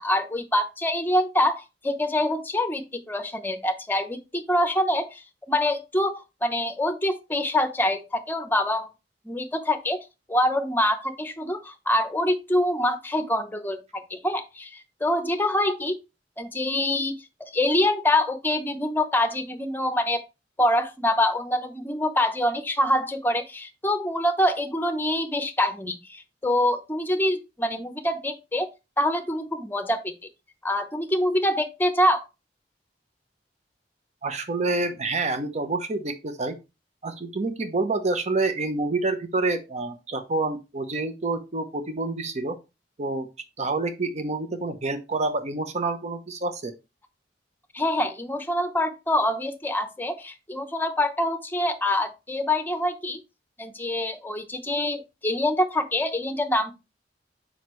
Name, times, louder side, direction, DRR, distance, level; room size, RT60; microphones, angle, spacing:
voice 1, 0.0-5.2 5.5-8.9 9.2-10.0 10.3-16.0 16.4-17.1 17.4-20.2 20.6-28.7 29.0-30.1 30.6-32.2 47.7-53.2 53.6-56.7, left 1 dB, 10° left, 0.8 m, -25 dB
voice 2, 34.2-36.6 37.0-42.6 43.0-43.3 43.6-46.7, right 3 dB, 40° right, 0.8 m, -28 dB
6.4 x 5.2 x 3.1 m
head